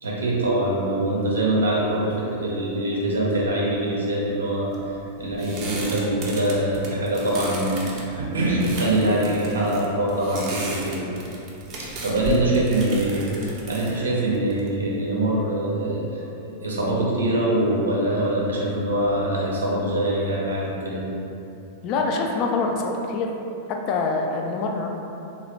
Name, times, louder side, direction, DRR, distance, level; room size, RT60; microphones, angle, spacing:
voice 1, 0.0-4.7 5.2-11.0 12.0-21.0, right 1 dB, 90° right, -5 dB, 0.7 m, -24 dB
sound 1, 4.7-15.1, right 2 dB, 45° right, 0.7 m, -36 dB
voice 2, 21.8-23.3 23.7-24.9, left 3 dB, 45° left, 2 dB, 0.4 m, -25 dB
3.1 x 2.6 x 3.0 m, 2.9 s
hypercardioid pair, 105°, 0 cm